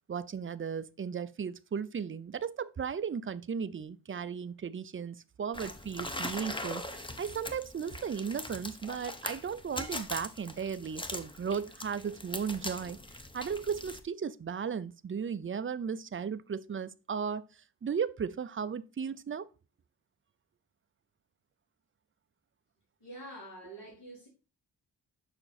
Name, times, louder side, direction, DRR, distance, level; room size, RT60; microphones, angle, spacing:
voice 1, 0.1-13.0 13.3-17.5 17.8-19.5, right 6 dB, 30° right, 0.4 m, -35 dB
sound 1, 5.5-14.0, left 1 dB, 10° left, 0.7 m, -41 dB
voice 2, 23.0-24.3, right 1 dB, 75° left, 3.7 m, -46 dB
6.8 x 6.0 x 4.1 m
wide cardioid pair, 130°, 42 cm